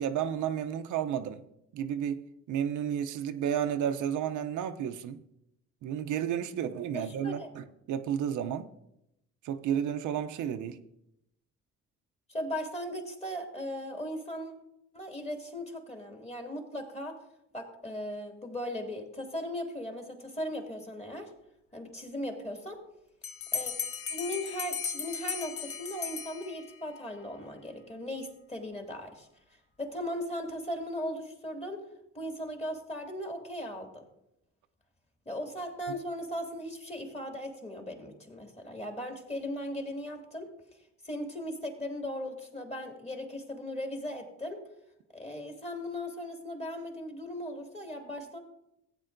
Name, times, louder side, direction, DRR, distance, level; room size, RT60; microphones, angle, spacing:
voice 1, 0.0-1.4 1.7-5.2 5.8-8.7 9.4-10.8, right 9 dB, 80° right, 0.6 m, -32 dB
voice 2, 6.9-7.5 12.3-14.5 14.9-17.2 17.5-21.3 21.7-22.8 23.5-23.7 24.1-29.3 29.8-31.8 32.1-34.0 35.3-40.5 41.0-44.6 45.1-48.4, left 1 dB, 20° left, 2.2 m, -38 dB
Bell, 23.2-26.9, left 6 dB, 50° left, 0.7 m, -36 dB
15.5 x 8.8 x 2.6 m
cardioid pair, 90°, 30 cm